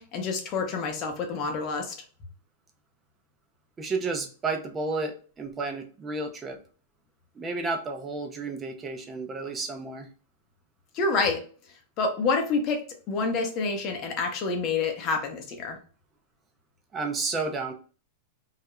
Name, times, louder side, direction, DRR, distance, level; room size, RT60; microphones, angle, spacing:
voice 1, 0.0-1.9 10.9-11.4 12.0-15.8, left 4 dB, 35° left, 3 dB, 0.6 m, -28 dB
voice 2, 3.8-6.6 7.3-10.1 16.9-17.7, right 3 dB, 15° right, 3 dB, 0.4 m, -31 dB
2.3 x 2.0 x 2.9 m, 0.39 s
supercardioid pair, 150°, 0 cm